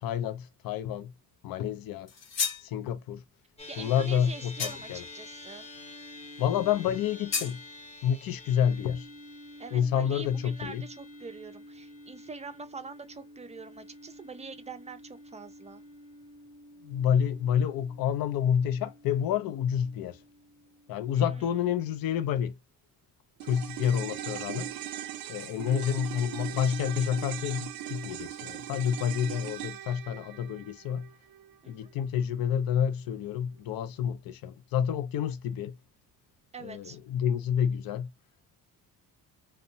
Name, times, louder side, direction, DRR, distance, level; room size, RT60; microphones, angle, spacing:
voice 1, 0.0-1.1 1.4-2.1 2.6-3.2 3.8-5.0 6.4-7.6 8.0-9.1 9.7-10.8 16.8-20.2 20.9-22.6 23.4-24.7 25.3-31.1 31.7-35.8 36.6-38.1, left 8 dB, 70° left, 0.5 m, -29 dB
sound 1, 2.1-2.7 4.6-5.0 7.3-7.6, left 6 dB, 45° left, 0.8 m, -32 dB
sound 2, 3.6-22.1, left 1 dB, 15° left, 0.8 m, -49 dB
voice 2, 3.7-5.7 9.6-15.8 21.1-21.5 29.1-29.2 31.6-31.7 36.5-37.0, right 4 dB, 20° right, 0.4 m, -44 dB
sound 3, 23.4-31.9 32.2-32.3, right 12 dB, 75° right, 0.5 m, -40 dB
2.7 x 2.1 x 2.6 m
cardioid pair, 130°, 36 cm